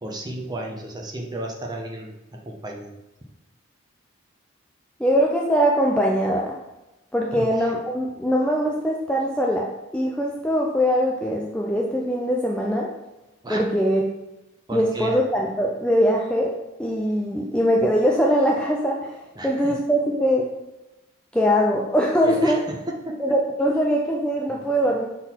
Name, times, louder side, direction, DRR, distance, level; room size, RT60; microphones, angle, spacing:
voice 1, 0.0-2.9 7.3-7.5 13.4-13.6 14.7-15.2 19.4-19.7 22.2-23.3 24.5-24.6, right 1 dB, 20° right, 0 dB, 0.8 m, -33 dB
voice 2, 5.0-6.5 7.1-9.7 9.9-12.9 13.5-14.0 14.7-16.5 16.8-20.5 21.3-22.6 23.2-25.1, equal, 5° left, -2 dB, 0.5 m, -22 dB
6.5 x 3.9 x 4.3 m, 0.98 s
head